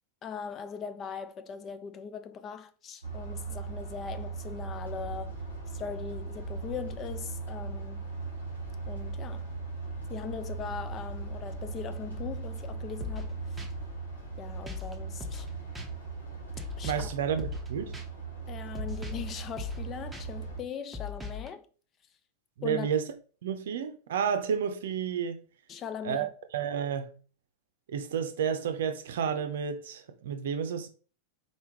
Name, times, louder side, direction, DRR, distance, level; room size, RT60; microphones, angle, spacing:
voice 1, 0.2-5.3 5.7-8.1 8.9-9.5 10.1-13.6 14.4-15.5 16.8-17.1 18.5-21.7 22.6-22.9 25.7-26.3, left 7 dB, 30° left, 0.5 m, -40 dB
sound 1, 3.0-20.6, right 4 dB, 90° left, 1.6 m, -38 dB
sound 2, 13.0-13.3 13.6-13.7 14.7-14.9 15.2-15.5 15.8-15.9 16.6-17.1 17.4-17.7 17.9-18.0 18.8-19.3 19.6-19.8 20.1-20.2 20.9-21.5, left 6 dB, 10° right, 0.8 m, -38 dB
voice 2, 16.8-18.0 22.6-23.1 23.4-25.4 26.0-26.3 26.5-27.1 27.9-30.9, right 7 dB, 60° right, 0.6 m, -31 dB
4.2 x 3.5 x 3.0 m
figure-of-eight pair, 90°, 0 cm